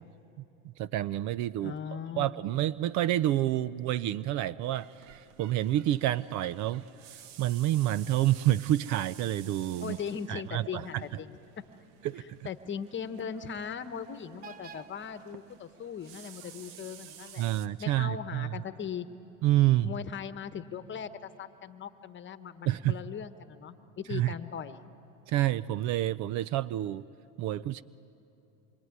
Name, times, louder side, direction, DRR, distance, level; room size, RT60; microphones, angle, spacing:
voice 1, 0.8-1.7 2.2-4.9 5.1-6.8 7.4-10.0 10.3-10.8 12.0-12.4 17.4-18.5 19.4-19.9 22.7-22.9 24.1-24.3 25.3-27.0 27.4-27.8, right 14 dB, 50° right, 19 dB, 0.6 m, -28 dB
voice 2, 1.6-2.4 9.8-11.4 12.2-17.4 17.8-19.1 19.8-24.8, left 7 dB, 30° left, 11 dB, 1.2 m, -39 dB
sound 1, 4.6-17.7, right 9 dB, 70° right, 1.2 m, -52 dB
26.0 x 23.5 x 9.6 m, 2.8 s
supercardioid pair, 105°, 39 cm